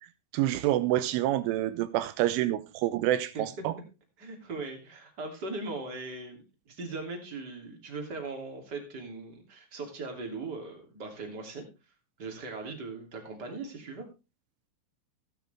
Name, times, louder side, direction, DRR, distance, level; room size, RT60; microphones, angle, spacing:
voice 1, 0.3-3.7, right 14 dB, 85° right, 3.2 m, -27 dB
voice 2, 4.2-11.6 12.2-14.1, right 3 dB, 25° right, 2.5 m, -39 dB
16.5 x 9.0 x 3.4 m
omnidirectional pair, 5.7 m